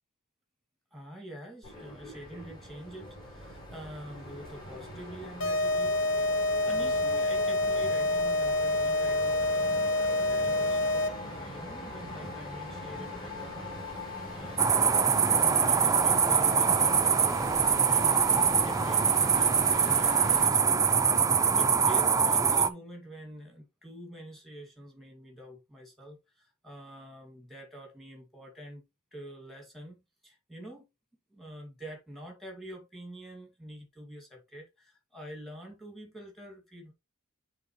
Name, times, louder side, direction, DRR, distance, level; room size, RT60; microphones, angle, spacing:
voice 1, 0.9-6.4 6.7-14.0 14.3-28.8 29.1-30.0 30.2-30.8 31.3-36.9, equal, ahead, 2.3 m, -46 dB
sound 1, 1.6-20.5, left 1 dB, 20° left, 3.8 m, -41 dB
sound 2, 5.4-11.4, left 2 dB, 65° left, 1.1 m, -27 dB
sound 3, 14.6-22.7, right 6 dB, 15° right, 0.3 m, -24 dB
8.8 x 4.0 x 3.1 m
head